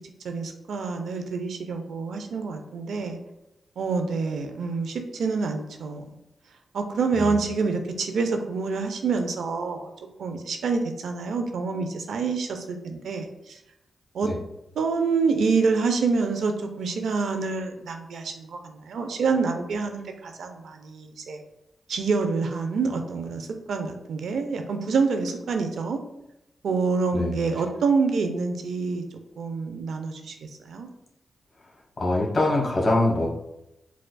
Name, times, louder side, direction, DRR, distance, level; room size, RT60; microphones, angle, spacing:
voice 1, 0.2-3.2 3.8-6.0 6.7-9.9 10.2-13.6 14.1-14.3 14.8-21.4 21.9-26.0 26.6-29.0 29.4-30.4 30.7-30.9, right 4 dB, 80° right, 5 dB, 0.4 m, -27 dB
voice 2, 32.0-33.3, left 2 dB, 45° left, -2 dB, 1.2 m, -23 dB
4.7 x 2.3 x 2.2 m, 0.89 s
cardioid pair, 65°, 0 cm